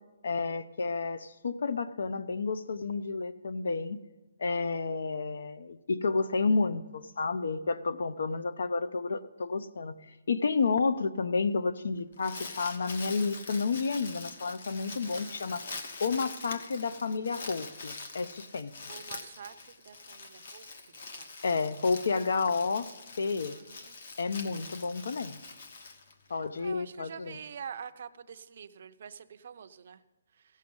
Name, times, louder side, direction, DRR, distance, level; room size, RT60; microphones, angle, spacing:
voice 1, 0.2-4.0 4.4-10.0 10.3-15.6 16.0-18.7 21.4-22.9 23.2-23.6 24.2-25.4 26.3-27.4, left 4 dB, 65° left, 13 dB, 0.7 m, -30 dB
Crumpling crinkling, 11.9-26.6, left 3 dB, 50° left, 1.1 m, -44 dB
voice 2, 15.0-15.5 18.9-19.5 19.8-20.7 21.2-21.3 23.5-23.9 26.3-30.0, right 7 dB, 45° right, 9 dB, 0.5 m, -46 dB
15.5 x 6.5 x 5.4 m, 1.2 s
hypercardioid pair, 175°, 0 cm